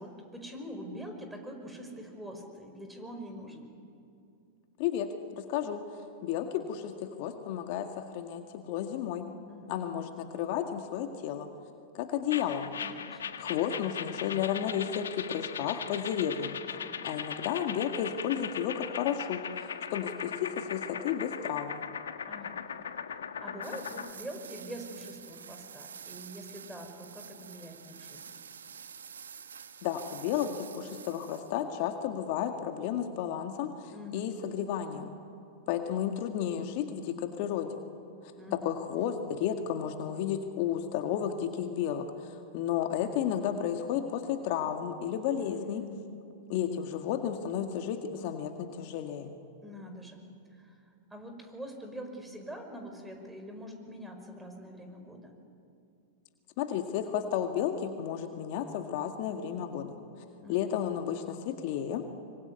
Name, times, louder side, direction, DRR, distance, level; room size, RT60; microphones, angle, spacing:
voice 1, 0.0-3.7 9.4-9.7 12.8-13.2 16.7-17.1 22.3-22.6 23.1-28.3 33.9-34.3 38.4-38.7 45.3-46.2 49.6-50.2 50.5-55.3 60.4-60.7, equal, 5° right, 5 dB, 5.3 m, -44 dB
voice 2, 4.8-5.9 6.2-9.3 9.7-11.5 11.9-12.7 13.4-16.6 17.0-21.8 29.8-35.1 35.7-37.7 38.6-45.9 46.5-49.3 56.6-60.0 60.5-62.0, left 9 dB, 55° left, 5 dB, 2.0 m, -32 dB
sound 1, 12.3-24.1, left 7 dB, 80° left, 1.4 m, -39 dB
sound 2, 23.6-31.6, right 7 dB, 80° right, 1.5 m, -48 dB
24.5 x 24.5 x 9.7 m, 2.5 s
hypercardioid pair, 100°, 0 cm